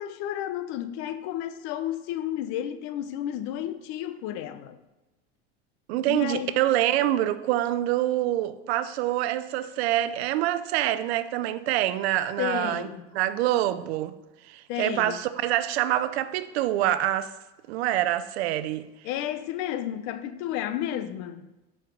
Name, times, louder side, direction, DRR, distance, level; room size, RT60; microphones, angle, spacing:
voice 1, 0.0-4.8 5.9-6.6 12.4-13.1 14.7-15.2 19.0-21.5, left 11 dB, 60° left, 0.7 m, -32 dB
voice 2, 5.9-12.9 13.1-14.1 14.5-17.3 17.7-18.8, right 13 dB, 85° right, 0.6 m, -26 dB
7.2 x 5.6 x 4.5 m
supercardioid pair, 120°, 31 cm